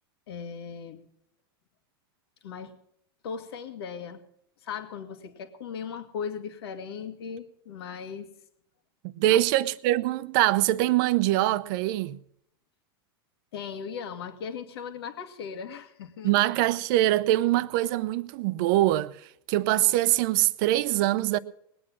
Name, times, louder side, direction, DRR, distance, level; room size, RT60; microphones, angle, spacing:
voice 1, 0.3-1.1 2.4-2.8 3.2-4.2 4.6-8.3 9.3-9.4 13.5-16.4, left 6 dB, 80° left, 1.9 m, -38 dB
voice 2, 9.0-12.2 16.2-19.1 19.5-21.4, right 15 dB, 55° right, 0.7 m, -23 dB
20.0 x 8.7 x 6.1 m
supercardioid pair, 130°, 13 cm